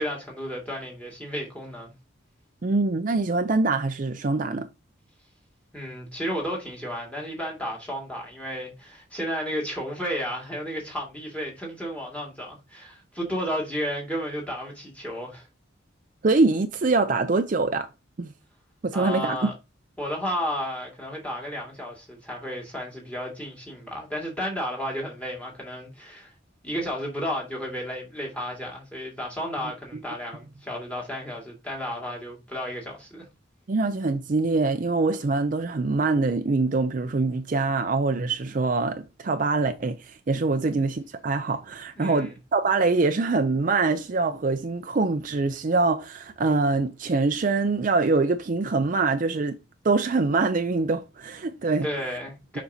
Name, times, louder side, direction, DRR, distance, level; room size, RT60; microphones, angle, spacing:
voice 1, 0.0-1.9 5.7-15.5 18.9-19.5 20.0-26.3 26.6-33.3 40.6-40.9 42.0-42.3 51.8-52.6, equal, 5° left, 2.1 m, -33 dB
voice 2, 2.6-4.7 16.2-17.9 18.2-18.3 18.8-19.5 29.9-30.0 33.7-49.6 49.8-51.9, right 3 dB, 40° right, 0.4 m, -24 dB
7.1 x 5.2 x 2.7 m
head